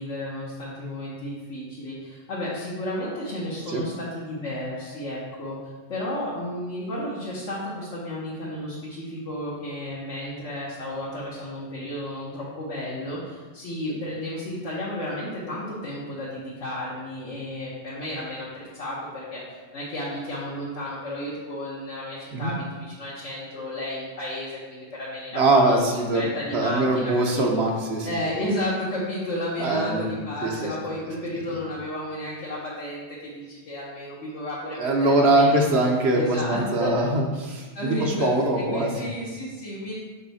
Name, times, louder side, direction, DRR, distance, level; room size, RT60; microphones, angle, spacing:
voice 1, 0.0-5.6 5.9-25.8 26.1-27.7 28.0-35.8 36.1-37.0 37.7-38.3 38.5-39.9, left 1 dB, 70° left, -8 dB, 1.4 m, -32 dB
voice 2, 25.3-26.2 26.5-28.1 29.6-30.1 30.4-30.7 34.8-38.9, right 2 dB, 60° right, 1 dB, 1.0 m, -22 dB
5.5 x 4.5 x 4.1 m, 1.3 s
omnidirectional pair, 1.3 m